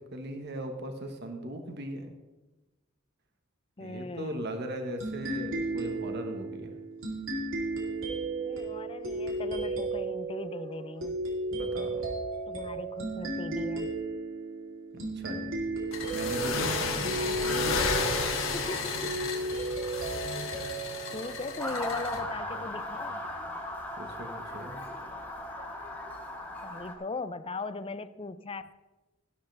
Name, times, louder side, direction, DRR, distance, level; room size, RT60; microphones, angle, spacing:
voice 1, 0.0-2.1 3.8-6.7 11.5-12.1 15.1-15.6 16.1-17.6 23.9-24.8, right 1 dB, 50° right, 5 dB, 1.4 m, -39 dB
voice 2, 3.8-4.5 8.4-11.2 12.5-13.9 17.2-17.5 18.5-19.1 21.1-23.2 26.6-28.6, left 3 dB, 25° left, 13 dB, 0.5 m, -39 dB
sound 1, 5.0-22.2, right 2 dB, 80° right, 3.3 m, -34 dB
sound 2, 15.9-22.2, left 4 dB, 70° left, 1.6 m, -32 dB
Motor vehicle (road) / Siren, 21.6-26.9, left 1 dB, 10° left, 1.8 m, -37 dB
13.0 x 12.5 x 3.4 m, 1.1 s
head